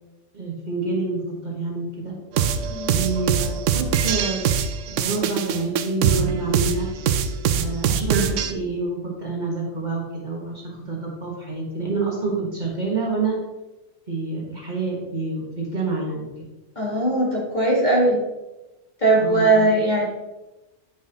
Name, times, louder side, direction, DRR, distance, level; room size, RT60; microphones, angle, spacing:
voice 1, 0.3-2.2 2.9-4.4 4.9-6.9 7.5-13.4 14.1-16.3 19.2-19.7, right 3 dB, 40° right, -3 dB, 1.5 m, -27 dB
sound 1, 2.4-8.5, right 8 dB, 90° right, 0.9 m, -23 dB
voice 2, 16.8-18.2 19.0-20.1, right 2 dB, 35° left, -4 dB, 2.0 m, -19 dB
9.1 x 5.5 x 2.9 m, 1.0 s
omnidirectional pair, 1.2 m